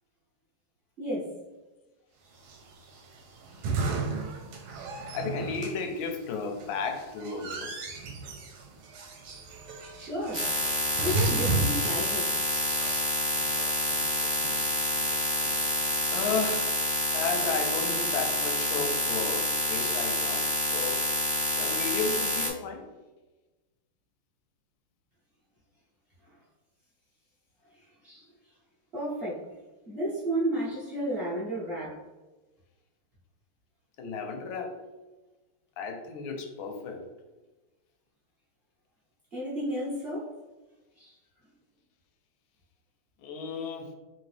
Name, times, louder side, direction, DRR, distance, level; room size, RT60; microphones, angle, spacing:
voice 1, 1.0-1.3 10.0-10.5 11.0-12.3 15.9-16.1 20.4-20.5 28.0-28.2 28.9-29.5 29.9-32.0 39.3-40.3 41.0-41.1, right 1 dB, 45° right, -9 dB, 0.7 m, -33 dB
sound 1, 2.4-16.7, right 3 dB, 75° right, 1.4 m, -36 dB
voice 2, 5.1-7.7 16.1-16.7 17.1-20.4 20.7-21.0 21.6-22.9 34.0-34.7 35.8-37.0 43.2-43.9, left 4 dB, 75° left, 4 dB, 1.3 m, -33 dB
sound 2, 10.3-22.5, equal, 15° right, 0.4 m, -28 dB
3.7 x 2.7 x 3.2 m, 1.2 s
omnidirectional pair, 2.4 m